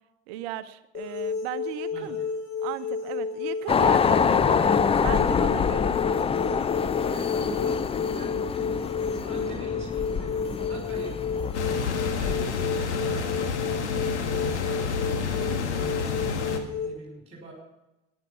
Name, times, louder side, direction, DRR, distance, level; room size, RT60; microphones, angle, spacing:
voice 1, 0.3-2.2 2.6-6.0, right 14 dB, 65° right, 13 dB, 0.9 m, -36 dB
sound 1, 0.9-16.9, left 5 dB, 45° left, 6.8 m, -31 dB
voice 2, 1.9-2.3 7.1-8.8 9.1-17.6, right 1 dB, 20° right, -1 dB, 5.3 m, -43 dB
sound 2, 3.7-12.3, left 6 dB, 15° left, 0.5 m, -26 dB
sound 3, 11.5-16.6, left 5 dB, 80° left, 1.7 m, -29 dB
14.0 x 10.5 x 5.8 m, 0.94 s
hypercardioid pair, 75°, 34 cm